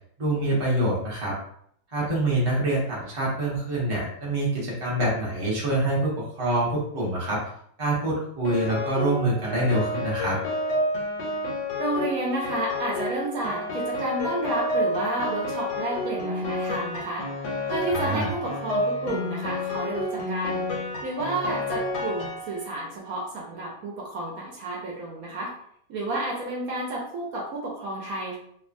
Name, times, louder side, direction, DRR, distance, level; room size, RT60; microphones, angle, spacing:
voice 1, 0.2-1.3 1.9-7.4 7.8-10.4 17.9-18.3, right 1 dB, 25° right, -5 dB, 0.7 m, -25 dB
Piano, 8.4-22.8, left 1 dB, 90° left, 1.2 m, -30 dB
voice 2, 11.8-17.2 17.7-20.7 21.0-25.5 25.9-28.4, right 1 dB, 65° right, -3 dB, 1.0 m, -31 dB
2.9 x 2.2 x 2.5 m, 0.67 s
omnidirectional pair, 1.7 m